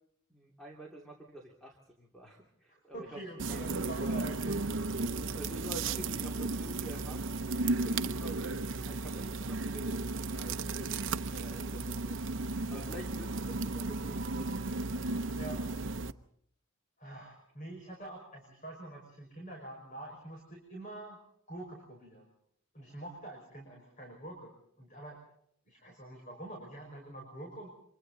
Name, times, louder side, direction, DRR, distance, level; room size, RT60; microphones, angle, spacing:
voice 1, 0.3-3.2 3.5-4.2 5.0-7.4 7.8-8.5 8.8-12.2 12.6-14.8, right 1 dB, ahead, 0 dB, 2.6 m, -48 dB
voice 2, 2.9-4.6 12.7-13.0 15.4-15.7 17.0-21.2 21.5-22.3 22.7-24.5 24.8-25.2 25.7-27.8, right 2 dB, 35° left, 1 dB, 5.5 m, -46 dB
sound 1, 3.4-16.1, right 3 dB, 60° right, 0.8 m, -34 dB
29.5 x 25.0 x 4.0 m, 0.68 s
head